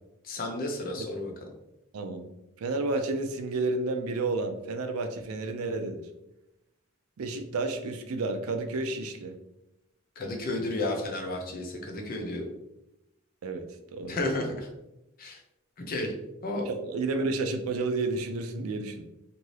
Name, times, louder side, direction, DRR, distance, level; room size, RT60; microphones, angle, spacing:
voice 1, 0.2-1.3 10.2-12.4 14.1-14.7 15.2-15.4 15.8-16.1 16.4-16.7, left 2 dB, 40° left, 2 dB, 0.5 m, -32 dB
voice 2, 1.9-2.3 2.6-6.0 7.2-9.3 13.4-13.7 13.9-14.2 16.7-19.0, right 3 dB, 85° right, 6 dB, 0.4 m, -31 dB
2.6 x 2.6 x 3.1 m, 0.90 s
head